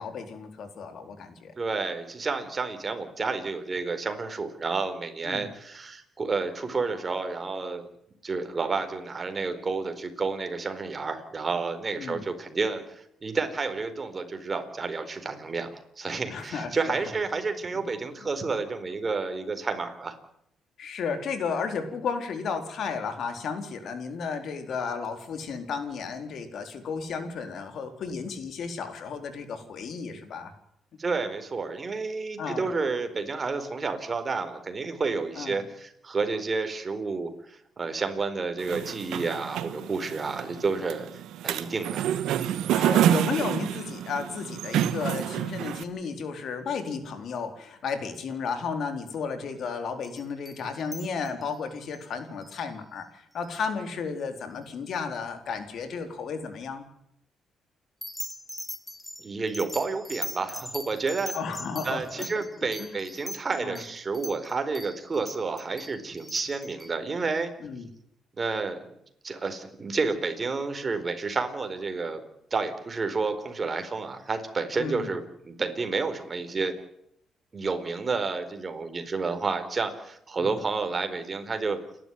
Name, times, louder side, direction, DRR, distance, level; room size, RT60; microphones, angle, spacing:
voice 1, 0.0-1.5 5.2-5.5 12.0-12.2 16.3-17.0 20.8-30.5 32.4-32.7 35.4-35.6 42.7-56.9 61.3-62.4 62.8-62.9 63.6-63.8 67.6-67.9 74.8-75.1 80.4-80.6, left 5 dB, 65° left, 7 dB, 4.3 m, -33 dB
voice 2, 1.6-7.9 8.2-20.1 31.0-41.1 41.4-42.1 59.2-61.3 61.8-67.5 68.4-68.9 69.2-72.2 72.5-76.7 77.5-81.8, right 4 dB, 35° right, 8 dB, 4.4 m, -30 dB
sound 1, 38.6-45.8, right 11 dB, 85° right, 1.5 m, -28 dB
sound 2, 50.0-51.6 51.9-52.0 52.4-52.7 53.4-53.6 58.0-66.9, left 1 dB, 5° left, 1.9 m, -41 dB
29.5 x 12.5 x 9.4 m, 0.75 s
cardioid pair, 90°, 0 cm